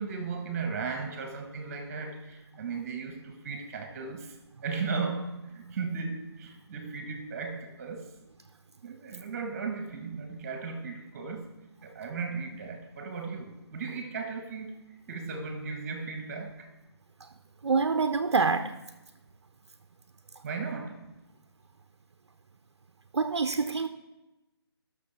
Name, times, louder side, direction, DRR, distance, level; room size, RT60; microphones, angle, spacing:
voice 1, 0.0-4.3 4.6-8.1 8.8-11.5 11.8-14.8 15.1-16.7 20.4-21.0, right 4 dB, 35° right, 1.5 m, -36 dB
voice 2, 17.6-18.7 23.1-23.9, right 4 dB, 70° right, 0.7 m, -26 dB
18.0 x 6.6 x 3.5 m
figure-of-eight pair, 150°, 14 cm